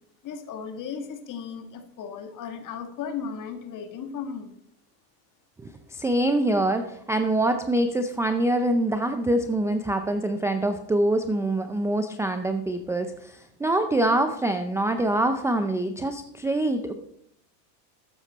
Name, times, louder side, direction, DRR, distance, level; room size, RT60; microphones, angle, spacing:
voice 1, 0.2-4.5, left 6 dB, 40° left, 8 dB, 1.8 m, -35 dB
voice 2, 5.6-16.9, right 1 dB, 5° right, 7 dB, 0.5 m, -25 dB
12.5 x 9.4 x 4.2 m, 0.73 s
supercardioid pair, 115°, 50 cm